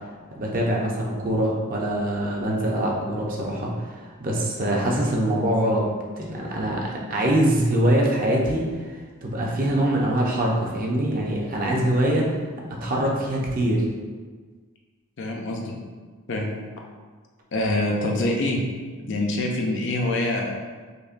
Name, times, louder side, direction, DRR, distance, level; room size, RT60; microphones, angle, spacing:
voice 1, 0.4-5.9 6.2-8.6 8.9-12.3 12.8-13.8, right 1 dB, 40° right, -2 dB, 0.6 m, -23 dB
voice 2, 15.2-15.7 16.3-16.5 17.5-18.6 19.0-20.5, left 1 dB, 55° left, 0 dB, 0.5 m, -25 dB
5.3 x 2.1 x 2.5 m, 1.5 s
head